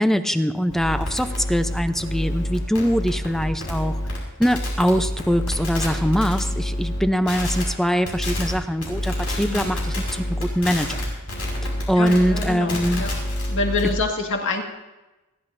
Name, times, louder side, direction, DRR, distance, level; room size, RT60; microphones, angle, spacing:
voice 1, 0.0-4.0 4.4-11.1 11.9-13.0, equal, ahead, 9 dB, 0.6 m, -22 dB
sound 1, 0.7-7.0 7.3-7.6 8.1-8.5 8.8-14.0, left 1 dB, 90° left, 5.6 m, -28 dB
voice 2, 9.4-9.7 12.0-13.1 13.5-14.6, left 3 dB, 60° left, 2 dB, 1.9 m, -26 dB
29.5 x 12.0 x 2.7 m, 1.0 s
head